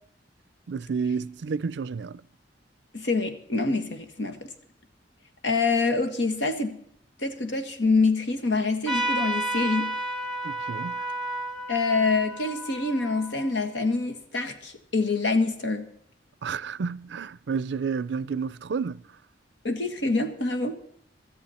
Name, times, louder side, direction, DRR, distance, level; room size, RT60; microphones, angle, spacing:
voice 1, 0.7-2.3 10.4-11.1 16.4-19.0, right 5 dB, 65° right, 0.4 m, -30 dB
voice 2, 2.9-4.5 5.4-6.8 7.2-9.9 11.7-15.9 19.6-20.7, left 3 dB, 80° left, 1.7 m, -26 dB
Trumpet, 8.9-13.9, right 1 dB, 5° left, 1.8 m, -32 dB
17.5 x 13.0 x 4.3 m
head